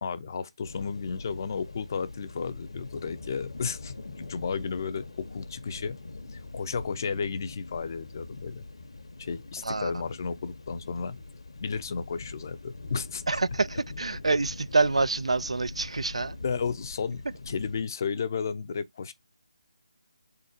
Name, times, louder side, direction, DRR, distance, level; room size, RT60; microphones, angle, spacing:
voice 1, 0.0-6.0 6.3-8.7 9.2-11.2 11.6-13.2 16.4-19.1, left 5 dB, 40° left, 0.5 m, -33 dB
sound 1, 0.6-17.8, left 3 dB, 75° left, 1.0 m, -43 dB
voice 2, 13.3-16.4, right 3 dB, 85° right, 0.3 m, -26 dB
4.0 x 3.9 x 2.6 m
figure-of-eight pair, 160°, 3 cm